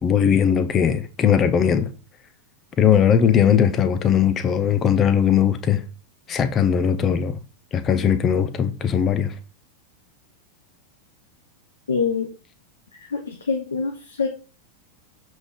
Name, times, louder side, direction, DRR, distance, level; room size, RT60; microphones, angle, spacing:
voice 1, 0.0-1.9 2.8-5.8 6.3-7.4 7.7-9.3, left 8 dB, 25° left, 1.0 m, -19 dB
voice 2, 11.9-12.3 13.0-14.3, left 5 dB, 70° left, 1.3 m, -25 dB
7.8 x 5.3 x 3.8 m
figure-of-eight pair, 90°, 0 cm